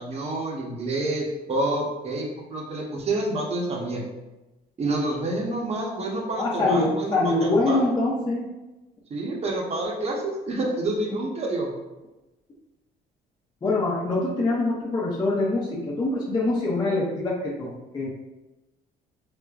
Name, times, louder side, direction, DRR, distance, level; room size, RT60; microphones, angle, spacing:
voice 1, 0.0-4.0 4.8-7.8 9.1-11.7, right 2 dB, 40° right, -1 dB, 0.9 m, -28 dB
voice 2, 6.4-8.5 13.6-18.1, left 2 dB, 25° left, -5 dB, 0.7 m, -24 dB
5.0 x 2.1 x 2.3 m, 1.0 s
cardioid pair, 110°, 17 cm